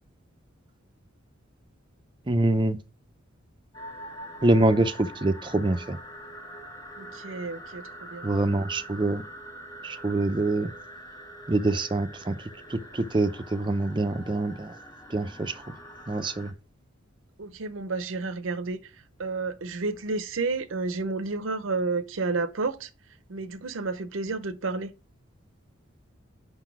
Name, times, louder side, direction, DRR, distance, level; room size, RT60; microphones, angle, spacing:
voice 1, 2.3-2.8 4.4-6.0 8.2-9.2 9.8-10.7 11.5-14.8 15.1-15.8 16.1-16.5, right 2 dB, 25° right, 0.5 m, -25 dB
sound 1, 3.7-16.5, equal, 15° left, 1.1 m, -44 dB
voice 2, 7.0-8.3 17.4-18.9 19.2-22.9 23.3-24.9, right 3 dB, 75° right, 0.6 m, -31 dB
5.4 x 3.9 x 5.8 m
head